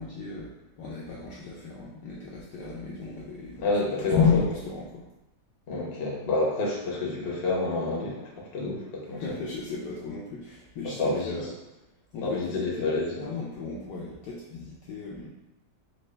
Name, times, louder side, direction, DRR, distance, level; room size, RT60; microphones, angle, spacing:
voice 1, 0.0-5.1 9.1-11.5 12.1-12.9 13.2-15.3, left 5 dB, 70° left, -5 dB, 1.0 m, -32 dB
voice 2, 3.6-4.2 5.7-9.2 10.8-11.4 12.2-13.1, left 2 dB, 45° left, -3 dB, 0.8 m, -28 dB
4.4 x 2.4 x 3.2 m, 0.96 s
omnidirectional pair, 2.2 m